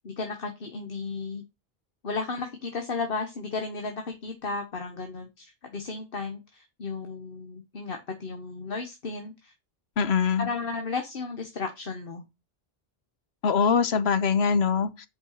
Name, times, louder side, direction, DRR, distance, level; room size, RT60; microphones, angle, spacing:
voice 1, 0.0-1.4 2.0-9.5 10.4-12.2, left 4 dB, 65° left, 1.3 m, -34 dB
voice 2, 10.0-10.5 13.4-15.1, left 6 dB, 90° left, 1.1 m, -23 dB
5.8 x 5.3 x 6.4 m
omnidirectional pair, 1.0 m